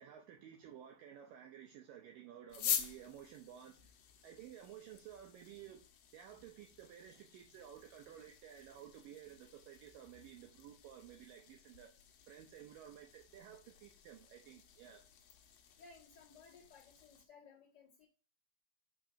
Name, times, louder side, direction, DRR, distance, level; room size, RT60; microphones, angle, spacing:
voice 1, 0.0-4.0 4.2-5.8 6.1-11.9 12.3-15.0, right 10 dB, 80° right, 2.0 m, -54 dB
sound 1, 2.5-17.2, left 9 dB, 75° left, 2.3 m, -47 dB
voice 2, 15.8-18.1, left 5 dB, 35° left, 1.7 m, -60 dB
6.1 x 5.1 x 5.7 m
omnidirectional pair, 4.8 m